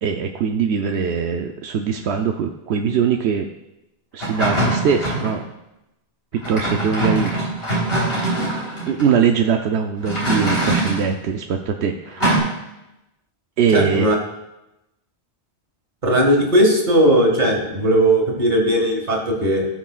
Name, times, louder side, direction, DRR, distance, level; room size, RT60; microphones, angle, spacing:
voice 1, 0.0-3.5 4.1-5.4 6.3-7.4 8.9-12.3 13.6-14.1, right 6 dB, 85° right, 4 dB, 0.9 m, -21 dB
sound 1, 4.2-5.4 6.4-9.0 10.0-11.1 12.2-12.4, right 2 dB, 70° left, 3.9 m, -22 dB
voice 2, 13.7-14.1 16.0-19.7, right 1 dB, 50° right, 0 dB, 2.1 m, -17 dB
18.0 x 6.1 x 2.4 m, 0.92 s
omnidirectional pair, 1.1 m